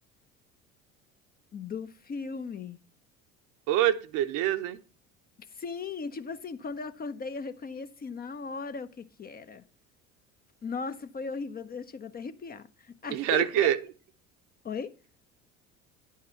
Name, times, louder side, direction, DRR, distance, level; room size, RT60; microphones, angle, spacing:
voice 1, 1.5-2.8 5.5-9.6 10.6-13.7 14.6-14.9, left 5 dB, 25° left, 0.7 m, -37 dB
voice 2, 3.7-4.8 13.1-13.8, right 12 dB, 50° right, 0.9 m, -25 dB
10.5 x 5.7 x 5.6 m
figure-of-eight pair, 60°, 40 cm